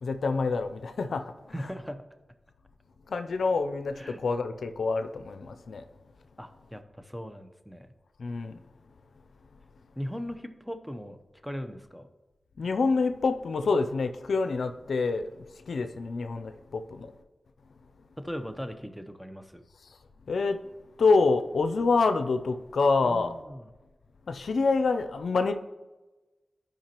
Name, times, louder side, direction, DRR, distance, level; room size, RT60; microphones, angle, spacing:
voice 1, 0.0-1.2 1.6-1.7 3.1-3.9 4.2-5.8 8.2-8.6 12.6-15.3 15.7-17.1 20.3-20.6 21.0-23.3 24.3-25.5, left 4 dB, 80° left, 0.4 m, -26 dB
voice 2, 1.5-2.0 4.0-4.2 6.4-7.9 10.0-11.2 11.4-12.1 18.2-19.6 23.0-23.6, equal, ahead, 0.8 m, -38 dB
11.5 x 5.1 x 3.0 m
cardioid pair, 40°, 0 cm